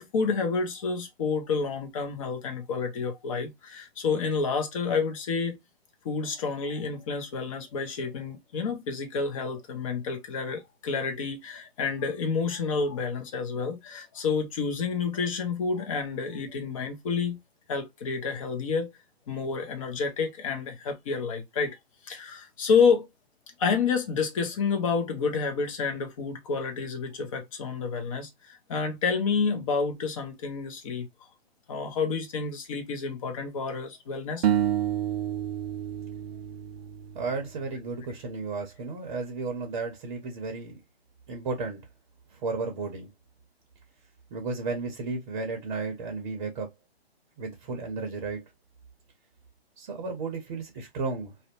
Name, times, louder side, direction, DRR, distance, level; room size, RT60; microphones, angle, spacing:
voice 1, 0.0-5.6 6.0-17.4 17.7-18.9 19.3-21.8 22.0-23.1 23.6-31.1 31.7-34.5, left 5 dB, 30° left, 0.6 m, -29 dB
sound 1, 34.4-37.7, right 10 dB, 75° right, 0.5 m, -29 dB
voice 2, 37.1-40.8 41.3-41.8 42.3-43.1 44.3-46.7 47.4-48.4 49.8-51.3, right 4 dB, 35° right, 0.7 m, -33 dB
2.6 x 2.1 x 2.4 m
hypercardioid pair, 140°, 32 cm